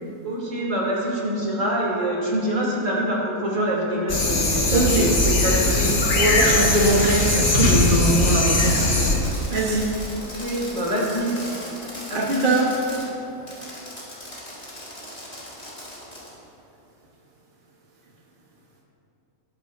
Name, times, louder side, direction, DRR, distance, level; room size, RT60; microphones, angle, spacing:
voice 1, 0.2-5.9 10.2-11.3 12.1-12.6, right 1 dB, 55° right, -5 dB, 3.3 m, -25 dB
sound 1, 4.1-9.2, left 2 dB, 55° left, 1.6 m, -20 dB
voice 2, 4.7-5.1 6.1-8.9 9.5-9.9 12.1-12.7, right 2 dB, 40° right, -3 dB, 1.3 m, -21 dB
Fireworks, 5.2-13.0 13.5-16.3, left 1 dB, 35° left, 3.6 m, -37 dB
20.5 x 11.0 x 2.7 m, 2.9 s
omnidirectional pair, 1.6 m